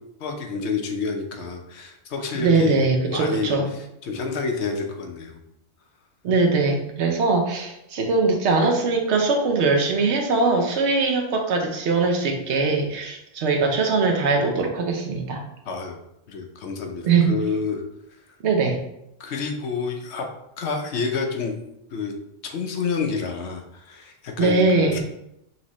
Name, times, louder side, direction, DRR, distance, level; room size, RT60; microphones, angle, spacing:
voice 1, 0.2-5.4 15.7-16.0 16.3-17.8 19.2-20.3 20.6-21.5 21.9-22.1 22.4-25.0, left 4 dB, 65° left, 4 dB, 0.9 m, -29 dB
voice 2, 2.3-3.7 6.2-15.4 17.0-17.3 18.4-18.8 24.4-25.0, right 3 dB, 65° right, 2 dB, 1.0 m, -21 dB
5.7 x 2.7 x 3.1 m, 0.82 s
omnidirectional pair, 1.3 m